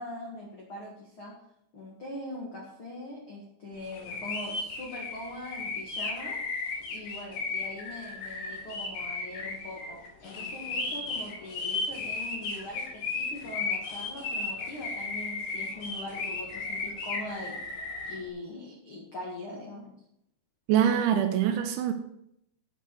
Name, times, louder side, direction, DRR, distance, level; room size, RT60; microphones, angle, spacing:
voice 1, 0.0-1.3 1.7-6.4 6.9-17.6 18.1-19.9, left 1 dB, 90° left, -3 dB, 1.1 m, -42 dB
sound 1, 3.9-18.2, left 3 dB, 65° left, 3.9 m, -35 dB
voice 2, 20.7-21.9, right 9 dB, 80° right, 8 dB, 2.8 m, -24 dB
9.1 x 6.5 x 6.9 m, 0.78 s
omnidirectional pair, 5.8 m